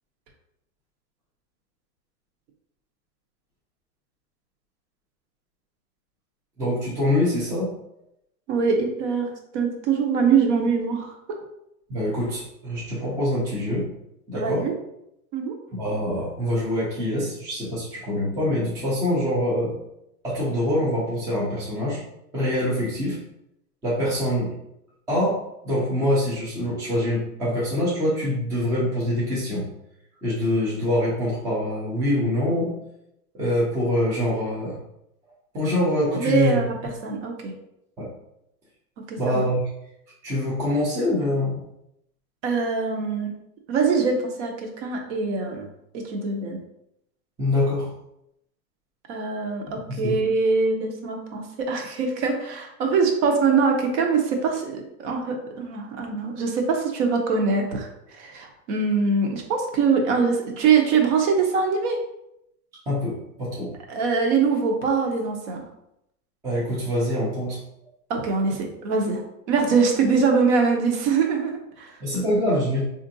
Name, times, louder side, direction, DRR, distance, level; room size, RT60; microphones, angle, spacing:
voice 1, 6.6-7.7 11.9-13.9 14.3-14.6 15.7-19.7 20.2-22.0 22.3-23.2 23.8-24.5 25.1-25.4 25.6-29.6 30.2-32.7 33.3-34.8 35.5-36.6 38.0-38.1 39.1-39.7 40.2-41.6 47.4-47.9 49.9-50.2 62.9-63.7 66.4-67.6 72.0-72.8, left 1 dB, 5° right, -7 dB, 0.4 m, -24 dB
voice 2, 8.5-11.1 14.3-14.7 15.3-15.5 36.1-37.5 39.0-39.4 42.4-43.3 43.7-45.7 45.9-46.6 49.1-57.9 58.1-62.0 63.9-65.6 68.1-69.2 69.5-71.9, right 5 dB, 50° right, 3 dB, 0.8 m, -23 dB
3.5 x 2.6 x 2.6 m, 0.80 s
hypercardioid pair, 135°, 46 cm